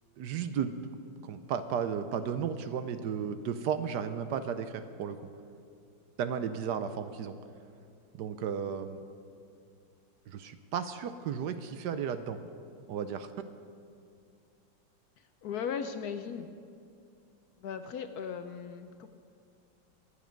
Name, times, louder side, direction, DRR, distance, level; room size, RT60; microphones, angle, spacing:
voice 1, 0.2-0.8 1.2-5.3 6.2-7.3 8.2-9.0 10.3-12.4 12.9-13.3, right 7 dB, 70° right, 10 dB, 1.2 m, -34 dB
voice 2, 15.4-16.5 17.6-19.1, left 7 dB, 65° left, 8 dB, 1.0 m, -37 dB
24.0 x 8.5 x 5.2 m, 2.4 s
omnidirectional pair, 2.0 m